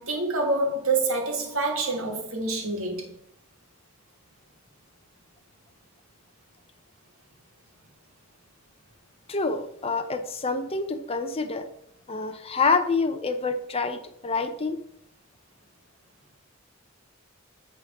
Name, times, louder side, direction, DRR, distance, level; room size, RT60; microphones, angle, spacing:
voice 1, 0.0-3.1, right 3 dB, 75° right, 1.8 m, -27 dB
voice 2, 9.3-11.7 12.1-14.8, left 4 dB, 25° left, 0.6 m, -27 dB
8.6 x 3.8 x 5.9 m
head